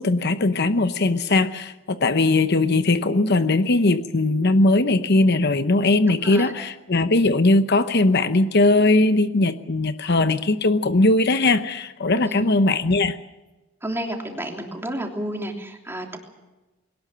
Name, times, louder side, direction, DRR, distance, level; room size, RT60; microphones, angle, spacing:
voice 1, 0.0-13.2, left 2 dB, 50° left, 10 dB, 0.9 m, -19 dB
voice 2, 6.2-6.7 12.2-12.5 13.8-16.2, right 1 dB, 10° right, 2 dB, 3.2 m, -31 dB
22.0 x 18.5 x 7.6 m, 1.1 s
head